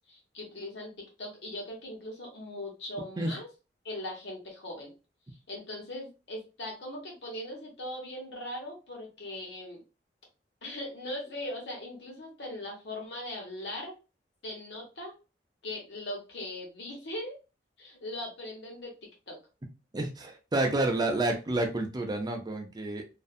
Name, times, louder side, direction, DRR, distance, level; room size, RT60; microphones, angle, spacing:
voice 1, 0.1-3.5 3.8-4.9 5.5-9.8 10.6-13.9 14.4-15.2 15.6-17.4 17.8-19.0 19.3-19.4, left 1 dB, 75° left, 1.1 m, -40 dB
voice 2, 19.9-23.1, right 2 dB, 25° right, 0.5 m, -29 dB
2.5 x 2.3 x 2.4 m
head